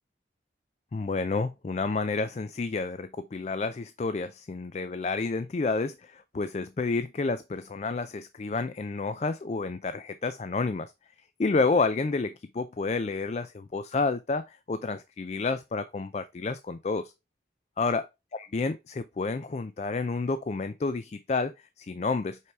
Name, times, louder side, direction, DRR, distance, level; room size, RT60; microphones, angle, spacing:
voice 1, 0.9-10.9 11.4-17.1 17.8-18.1 18.3-22.4, left 3 dB, 40° left, 0.4 m, -30 dB
5.5 x 4.8 x 4.5 m
head